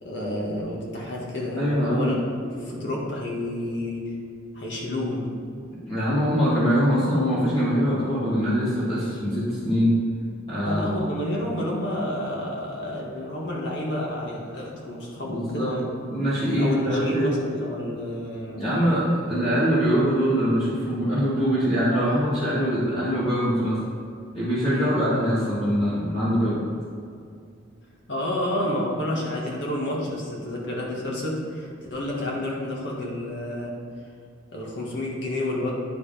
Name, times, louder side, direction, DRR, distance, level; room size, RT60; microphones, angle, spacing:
voice 1, 0.0-4.1 4.5-5.3 10.6-15.9 16.6-18.6 24.7-25.0 28.1-33.7 34.5-35.7, left 1 dB, 55° left, -3 dB, 1.9 m, -30 dB
voice 2, 1.5-2.1 5.9-9.9 10.5-11.0 15.3-15.8 16.1-17.3 18.6-23.8 24.3-26.6, equal, 25° left, -13 dB, 2.3 m, -23 dB
10.0 x 5.2 x 5.1 m, 2.3 s
head